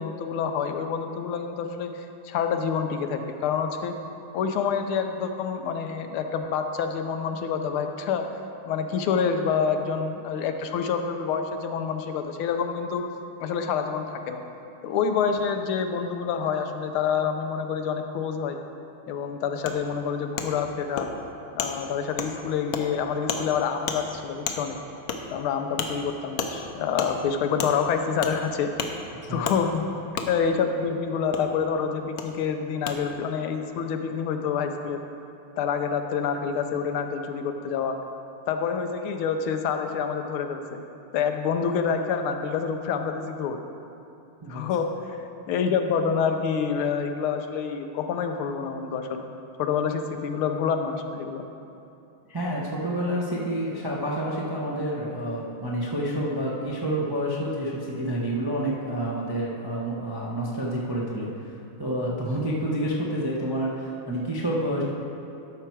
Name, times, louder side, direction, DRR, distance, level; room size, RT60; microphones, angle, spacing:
voice 1, 0.0-1.9 2.2-4.0 4.3-8.3 8.7-13.1 13.4-14.4 14.8-18.6 19.1-21.1 21.5-24.8 25.3-28.7 29.3-29.8 30.3-35.0 35.6-38.0 38.5-40.8 41.1-43.6 44.5-45.0 45.5-49.3 49.6-51.5, left 6 dB, 90° left, 6 dB, 1.6 m, -27 dB
Wood, 19.7-19.8 20.4-20.5 21.0-21.1 21.6-21.7 22.2-22.3 22.7-22.8 23.3-23.4 23.9-24.0 24.5-24.6 25.1-25.2 25.8-25.9 26.4-26.5 27.0-27.1 27.6-27.7 28.2-28.4 28.8-28.9 29.4-29.6 30.2-30.3 31.3-31.4 32.2-32.3 32.9-33.0, left 6 dB, 65° left, 0.8 m, -29 dB
voice 2, 52.3-61.5 61.8-64.8, right 1 dB, 30° right, -4 dB, 0.4 m, -28 dB
12.5 x 5.9 x 4.6 m, 2.7 s
omnidirectional pair, 2.3 m